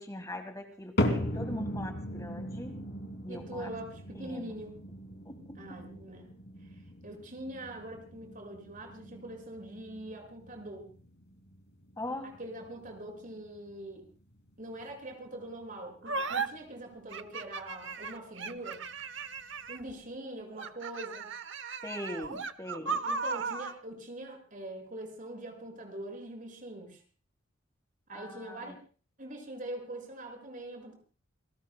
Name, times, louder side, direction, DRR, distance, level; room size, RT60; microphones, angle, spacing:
voice 1, 0.0-2.8 3.2-3.7 4.2-4.5 5.2-5.4 12.0-12.3 21.8-23.0 28.1-28.7, left 1 dB, 20° left, 6 dB, 1.7 m, -41 dB
sound 1, 1.0-17.3 17.6-18.1 18.7-18.8 19.6-19.7, left 1 dB, 60° left, 2.7 m, -39 dB
voice 2, 3.3-4.8 5.5-6.3 6.7-10.8 12.2-14.0 14.6-18.8 19.7-21.3 23.0-27.0 28.1-28.8 29.2-31.0, right 1 dB, 45° right, 3 dB, 6.5 m, -43 dB
sound 2, 16.0-16.5 17.1-19.9 20.5-23.8, right 4 dB, 70° right, 0.9 m, -36 dB
29.0 x 19.0 x 2.3 m, 0.39 s
head